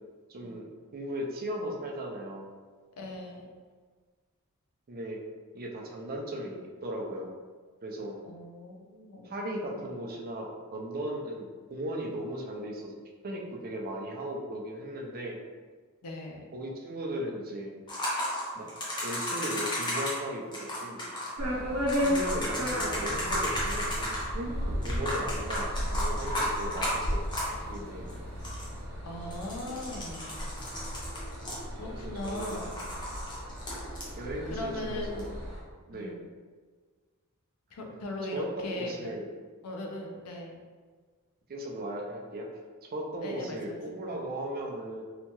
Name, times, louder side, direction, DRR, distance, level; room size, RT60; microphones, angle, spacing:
voice 1, 0.3-2.5 4.9-5.2 5.5-7.3 7.8-8.2 9.2-12.9 13.2-15.4 16.5-17.7 18.6-18.7 19.0-21.1 22.0-27.2 27.7-28.1 32.2-32.6 34.1-35.3 35.9-36.2 38.3-39.3 41.5-42.5 42.9-45.0, right 1 dB, 40° right, 0 dB, 0.4 m, -37 dB
voice 2, 3.0-3.5 8.2-9.3 16.0-16.4 29.1-30.4 31.8-32.9 34.4-35.2 35.9-36.3 37.7-39.1 39.6-40.6 43.2-43.8 44.1-44.2, left 1 dB, 85° left, 1 dB, 0.5 m, -39 dB
sound 1, 17.9-20.2 20.5-21.3 21.9-24.3 24.8-27.8 28.1-28.2 28.4-28.8 29.3-31.9 32.2-34.1 35.2-35.3, left 1 dB, 20° left, 0.6 m, -34 dB
sound 2, 21.4-35.6, equal, 80° right, 0.9 m, -35 dB
2.8 x 2.2 x 2.9 m, 1.5 s
head